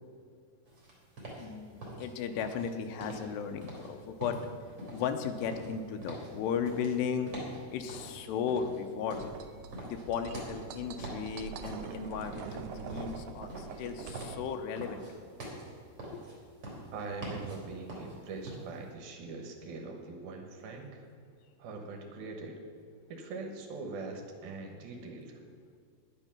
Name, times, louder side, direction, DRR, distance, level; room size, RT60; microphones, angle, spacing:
sound 1, 0.7-18.9, right 1 dB, 30° right, 3.4 m, -45 dB
voice 1, 1.4-4.4 4.9-7.3 7.7-9.3 9.8-15.3 16.1-16.2, left 7 dB, 85° left, 6 dB, 2.7 m, -35 dB
sound 2, 9.2-14.4, right 6 dB, 85° right, 2.0 m, -43 dB
voice 2, 16.9-21.1 21.6-22.6 23.1-25.4, right 3 dB, 70° right, 2 dB, 2.7 m, -42 dB
11.0 x 10.0 x 5.9 m, 2.2 s
omnidirectional pair, 5.1 m